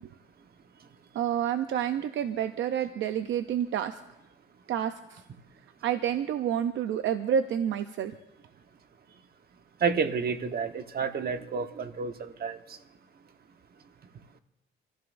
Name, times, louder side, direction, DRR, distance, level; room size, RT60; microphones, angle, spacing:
voice 1, 1.1-4.0 4.7-5.2 5.8-8.1, right 9 dB, 70° right, 0.7 m, -29 dB
voice 2, 9.8-12.6, right 5 dB, 50° right, 1.2 m, -30 dB
26.0 x 14.5 x 2.6 m
cardioid pair, 90°, 20 cm